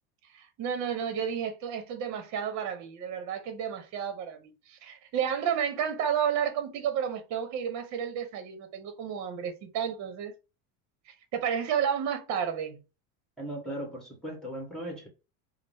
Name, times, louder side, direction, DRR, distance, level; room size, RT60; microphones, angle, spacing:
voice 1, 0.3-10.3 11.1-12.8, right 8 dB, 50° right, 1.0 m, -31 dB
voice 2, 13.4-15.1, right 1 dB, ahead, 1.4 m, -37 dB
4.8 x 2.1 x 3.5 m
cardioid pair, 145°, 37 cm